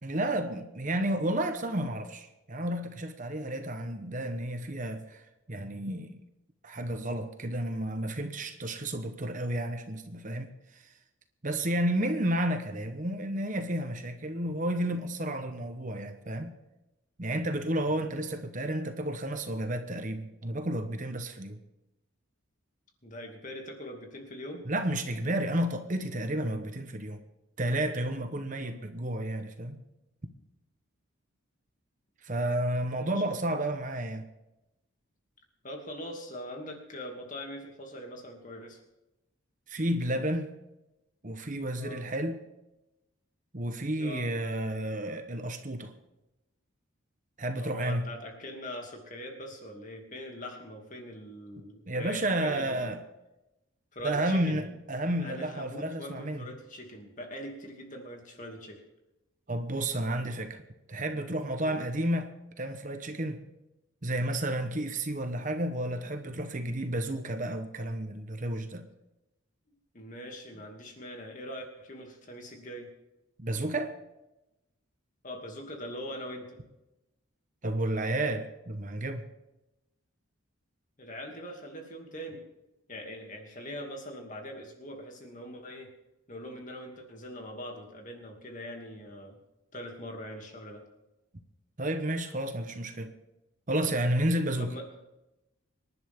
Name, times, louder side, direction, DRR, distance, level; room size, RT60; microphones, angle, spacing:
voice 1, 0.0-5.2 5.5-6.2 6.6-10.5 11.4-16.5 17.2-21.6 24.7-27.2 27.6-29.8 32.2-34.2 39.7-40.5 41.2-42.4 43.5-45.9 47.4-48.1 51.9-53.0 54.0-56.4 59.5-60.6 60.9-62.3 62.6-63.4 64.0-68.8 73.4-73.9 77.6-79.2 91.8-93.1 93.7-94.7, right 1 dB, 35° right, 1.1 m, -31 dB
voice 2, 23.0-24.6 28.5-28.8 33.0-33.4 35.6-38.8 41.7-42.0 44.0-44.3 47.6-52.9 53.9-54.6 55.2-58.8 61.6-61.8 69.9-72.9 75.2-76.6 81.0-82.4 82.9-85.9 86.3-89.4 89.7-90.8 94.6-94.9, equal, 35° left, 2.6 m, -42 dB
25.5 x 11.0 x 3.7 m
head